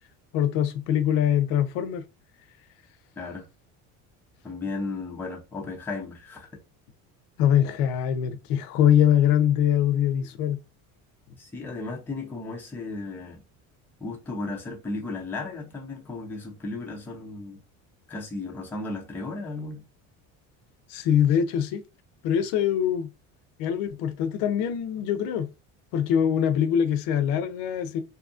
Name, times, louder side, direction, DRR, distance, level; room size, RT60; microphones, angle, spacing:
voice 1, 0.3-2.0 7.4-10.6 20.9-21.8 22.2-23.1 23.6-25.5 25.9-28.0, left 9 dB, 80° left, 0.5 m, -23 dB
voice 2, 4.4-6.5 11.4-13.4 14.0-17.6 18.1-19.8, left 3 dB, 5° left, 0.4 m, -35 dB
2.7 x 2.4 x 2.4 m
cardioid pair, 165°, 36 cm